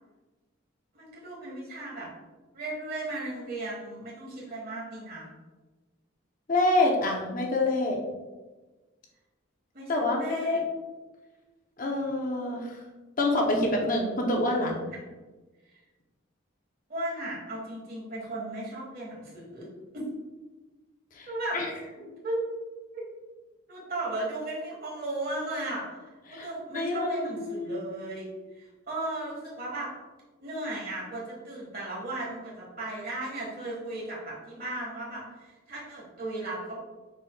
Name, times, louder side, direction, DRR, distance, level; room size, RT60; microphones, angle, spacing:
voice 1, 0.9-2.1 2.5-5.3 9.7-10.6 16.9-19.7 19.9-20.0 21.3-21.6 22.0-22.4 22.9-23.0 23.7-28.3 28.6-29.9 30.4-36.8, right 2 dB, 45° right, -4 dB, 1.4 m, -36 dB
voice 2, 6.5-8.0 9.9-10.6 11.8-12.8 13.2-14.8 21.1-21.3 21.5-21.7 26.3-26.5 26.7-27.9, left 2 dB, 40° left, 0 dB, 0.7 m, -27 dB
5.4 x 4.0 x 2.2 m, 1.2 s
head